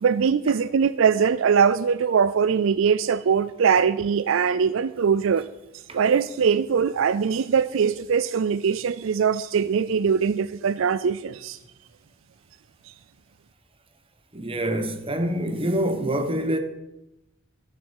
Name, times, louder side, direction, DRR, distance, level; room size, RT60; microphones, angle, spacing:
voice 1, 0.0-5.5 5.9-11.6, right 6 dB, 70° right, 0.4 m, -22 dB
voice 2, 14.3-16.6, right 1 dB, 25° right, 1.1 m, -26 dB
13.5 x 6.7 x 7.3 m
head